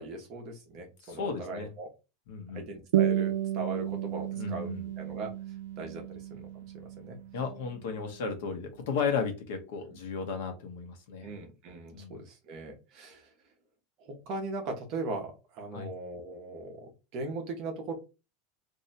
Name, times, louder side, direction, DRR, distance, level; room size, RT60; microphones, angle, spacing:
voice 1, 0.0-1.9 2.5-4.7 5.0-5.3 5.8-6.5 6.7-7.2 9.9-10.0 11.2-13.3 14.0-17.9, right 2 dB, 35° right, 3 dB, 0.9 m, -39 dB
voice 2, 1.1-1.7 2.3-2.7 4.3-4.9 7.3-11.3 11.9-12.2 15.7-15.9, left 5 dB, 65° left, 5 dB, 0.9 m, -34 dB
sound 1, 2.9-7.9, right 12 dB, 80° right, 0.3 m, -32 dB
2.7 x 2.3 x 4.0 m, 0.28 s
supercardioid pair, 180°, 0 cm